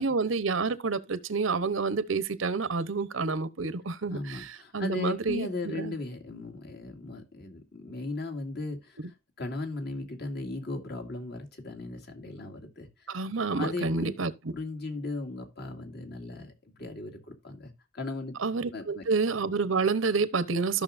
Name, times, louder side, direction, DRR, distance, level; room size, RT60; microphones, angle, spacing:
voice 1, 0.0-6.0 13.1-14.3 18.4-20.8, right 4 dB, 85° right, 0.9 m, -29 dB
voice 2, 4.1-13.2 13.5-14.1 14.5-18.4 18.7-19.0, left 2 dB, 55° left, 2.3 m, -37 dB
13.5 x 6.3 x 2.6 m
head